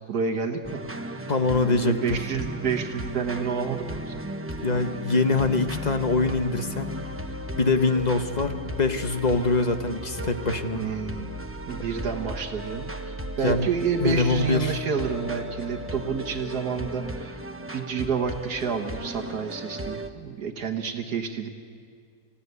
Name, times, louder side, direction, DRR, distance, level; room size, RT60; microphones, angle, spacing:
voice 1, 0.1-1.3 1.6-4.2 10.7-11.3 11.7-17.4 17.7-21.5, right 6 dB, 80° right, 4 dB, 1.8 m, -29 dB
sound 1, 0.6-20.1, equal, 10° right, 0.7 m, -36 dB
voice 2, 1.3-2.0 4.6-6.9 7.6-10.8 11.8-11.9 13.4-13.7 14.0-14.7, left 3 dB, 30° left, 7 dB, 1.0 m, -24 dB
sound 2, 5.3-12.3 12.5-13.4 13.6-16.1, left 2 dB, 15° left, 7.7 m, -41 dB
28.0 x 16.0 x 9.5 m, 2.3 s
omnidirectional pair, 1.7 m